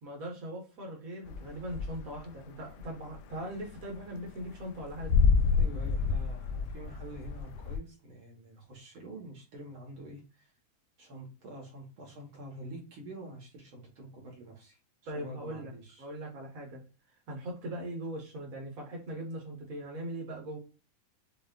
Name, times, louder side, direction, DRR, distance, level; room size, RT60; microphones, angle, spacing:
voice 1, 0.0-5.1 15.0-15.7 16.0-16.8 17.3-20.6, right 1 dB, 80° right, -1 dB, 0.7 m, -40 dB
sound 1, 1.3-2.3 2.6-7.8, left 5 dB, 80° left, 2.0 m, -28 dB
voice 2, 5.6-10.5 11.0-16.1, right 1 dB, 50° right, -1 dB, 1.7 m, -47 dB
7.1 x 2.7 x 2.4 m, 0.33 s
omnidirectional pair, 3.8 m